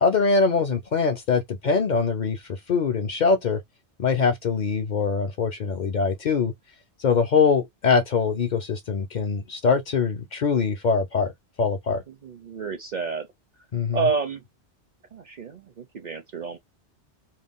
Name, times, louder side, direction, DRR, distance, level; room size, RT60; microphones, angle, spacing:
voice 1, 0.0-2.4 2.7-3.6 4.0-6.5 7.0-11.3 11.6-12.0 13.7-14.0, left 5 dB, 55° left, 0.6 m, -23 dB
voice 2, 12.1-13.3 13.9-14.4 15.1-16.6, right 5 dB, 55° right, 0.5 m, -29 dB
2.5 x 2.2 x 3.4 m
omnidirectional pair, 1.1 m